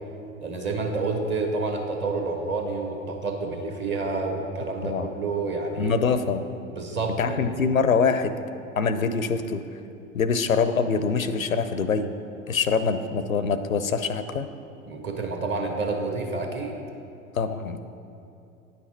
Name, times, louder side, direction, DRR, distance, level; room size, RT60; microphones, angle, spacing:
voice 1, 0.4-5.9 6.7-7.4 14.9-16.7, right 3 dB, 30° right, 2 dB, 1.1 m, -29 dB
voice 2, 5.8-6.4 7.2-8.3 8.8-9.6 10.1-12.1 12.5-14.5 17.4-18.0, left 5 dB, 90° left, 11 dB, 0.5 m, -24 dB
9.4 x 5.9 x 4.3 m, 2.6 s
figure-of-eight pair, 85°, 40 cm